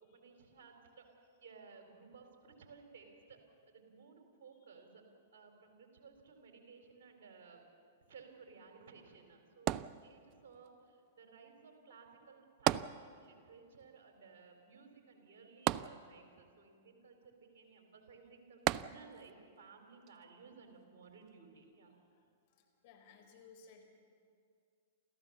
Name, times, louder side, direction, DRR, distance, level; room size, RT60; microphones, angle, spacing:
voice 1, 0.0-3.4 3.7-5.0 5.3-7.6 8.1-21.9, right 5 dB, 55° right, 3 dB, 4.3 m, -58 dB
sound 1, 9.7-10.6 12.7-13.5 13.8-13.9 15.7-16.5 18.7-19.4 20.1-20.2, right 14 dB, 40° right, 0.4 m, -35 dB
voice 2, 22.5-23.8, left 5 dB, 55° left, 4 dB, 4.3 m, -59 dB
29.0 x 14.0 x 7.2 m, 2.3 s
figure-of-eight pair, 105°, 0 cm